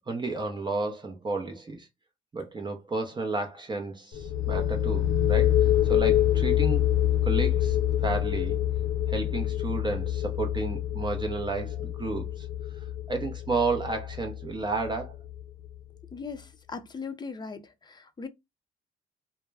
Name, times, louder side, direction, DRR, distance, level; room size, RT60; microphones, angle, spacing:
voice 1, 0.1-1.9 2.3-6.8 7.3-8.6 9.1-12.5 13.1-15.2, right 3 dB, 25° right, 0.6 m, -32 dB
sound 1, 4.1-15.7, left 11 dB, 75° left, 0.5 m, -26 dB
voice 2, 16.1-18.3, left 5 dB, 20° left, 0.5 m, -39 dB
2.1 x 2.0 x 3.3 m
cardioid pair, 90°, 20 cm